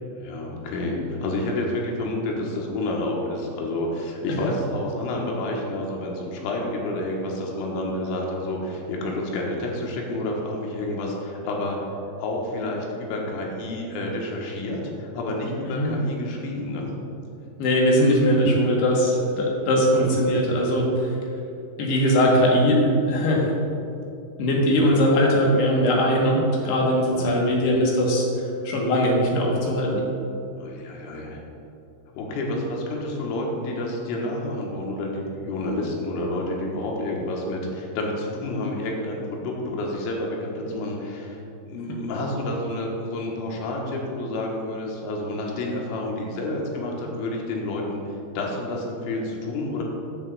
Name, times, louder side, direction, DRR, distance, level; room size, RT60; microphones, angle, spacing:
voice 1, 0.2-11.8 12.2-16.9 20.0-20.1 27.1-27.3 30.6-31.4 32.2-41.4 41.7-48.0 48.4-49.8, left 1 dB, 90° left, -1 dB, 3.8 m, -29 dB
voice 2, 17.6-21.1 21.8-23.6 24.4-28.3 28.6-30.0, equal, 65° left, -2 dB, 3.0 m, -20 dB
12.5 x 9.8 x 2.4 m, 2.7 s
omnidirectional pair, 5.7 m